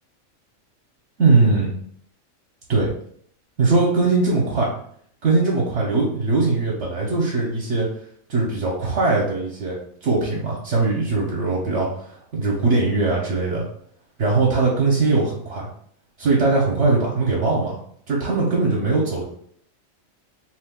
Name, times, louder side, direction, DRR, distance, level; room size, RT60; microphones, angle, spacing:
voice 1, 1.2-1.7 2.7-2.9 3.6-4.7 5.2-7.9 8.3-11.9 12.3-13.6 14.2-15.7 16.2-17.8 18.1-19.2, right 3 dB, 60° right, -4 dB, 1.0 m, -20 dB
2.9 x 2.3 x 3.5 m, 0.63 s
omnidirectional pair, 1.4 m